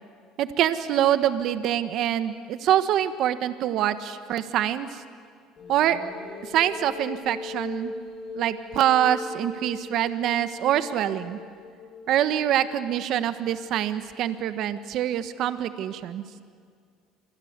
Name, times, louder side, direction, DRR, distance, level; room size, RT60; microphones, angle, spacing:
voice 1, 0.4-5.0 5.7-6.0 6.4-7.9 8.3-11.4 12.1-16.2, right 11 dB, 60° right, 11 dB, 1.4 m, -25 dB
sound 1, 5.6-12.9, left 3 dB, 45° left, 8.0 m, -40 dB
27.5 x 25.0 x 8.2 m, 2.1 s
supercardioid pair, 95°, 0 cm